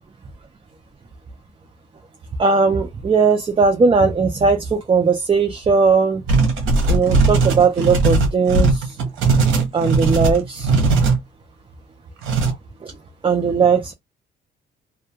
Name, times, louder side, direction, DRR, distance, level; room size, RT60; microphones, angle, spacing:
voice 1, 2.4-6.2 6.9-9.0 9.7-10.7 12.8-12.9 13.2-13.9, right 4 dB, 25° right, 0.5 m, -18 dB
sound 1, 6.3-11.2 12.2-12.5, right 3 dB, 85° right, 0.8 m, -18 dB
2.3 x 2.3 x 2.7 m
cardioid pair, 90°, 20 cm